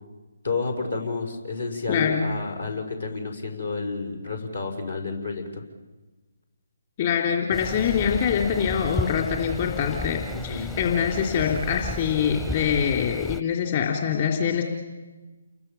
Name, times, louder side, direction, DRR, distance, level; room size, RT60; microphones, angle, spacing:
voice 1, 0.4-5.6 10.3-10.7, left 4 dB, 75° left, 4 dB, 5.6 m, -30 dB
voice 2, 1.9-2.3 7.0-14.6, left 7 dB, 40° left, 1 dB, 3.1 m, -24 dB
sound 1, 7.5-13.4, left 1 dB, 10° left, 0.7 m, -34 dB
30.0 x 22.5 x 7.1 m, 1.2 s
figure-of-eight pair, 145°, 0 cm